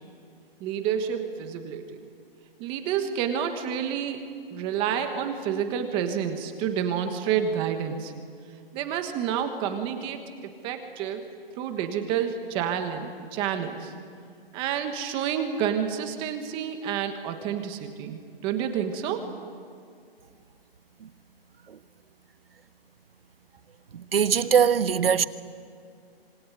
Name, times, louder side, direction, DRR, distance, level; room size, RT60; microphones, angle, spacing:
voice 1, 0.6-2.0 2.6-4.2 4.5-8.1 8.7-11.2 11.6-13.9 14.5-19.3, right 8 dB, 15° right, 1.4 m, -29 dB
voice 2, 23.9-25.2, right 7 dB, 70° right, 1.3 m, -21 dB
26.5 x 23.5 x 9.5 m
hypercardioid pair, 160°, 30 cm